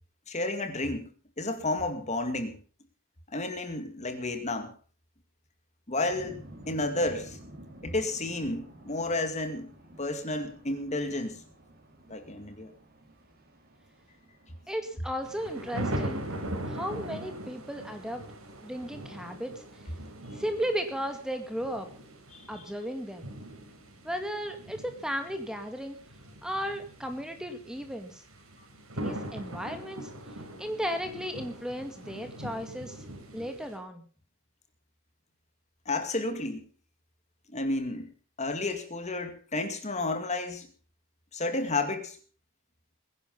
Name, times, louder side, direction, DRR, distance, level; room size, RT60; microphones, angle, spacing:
voice 1, 0.3-1.1 1.4-2.6 3.3-4.7 5.9-6.4 6.7-7.4 7.8-9.7 10.0-11.4 12.1-12.7 22.3-22.6 35.9-36.6 37.5-38.1 38.4-40.7 41.3-42.2, left 2 dB, 30° left, 8 dB, 2.2 m, -31 dB
sound 1, 6.0-19.4, right 1 dB, 45° right, 4.6 m, -52 dB
voice 2, 14.7-16.2 16.7-18.2 18.6-19.5 20.3-21.9 22.5-23.3 24.0-26.0 26.4-28.2 28.9-30.1 30.6-33.0 33.3-34.0, equal, 5° right, 6 dB, 2.0 m, -35 dB
sound 2, 15.2-33.7, right 1 dB, 75° right, 5.0 m, -41 dB
21.0 x 11.0 x 5.4 m, 0.40 s
head